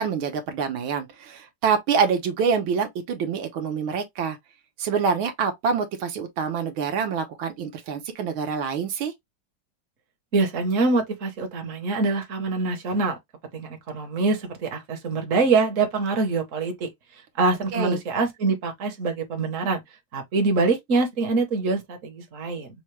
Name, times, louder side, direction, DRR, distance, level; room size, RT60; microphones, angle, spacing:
voice 1, 0.0-4.4 4.8-9.1 17.7-18.0, right 6 dB, 75° right, 1.7 m, -26 dB
voice 2, 10.3-13.2 13.5-16.9 17.4-19.8 20.1-22.7, right 3 dB, 45° right, 1.1 m, -24 dB
5.6 x 2.2 x 3.1 m
omnidirectional pair, 2.3 m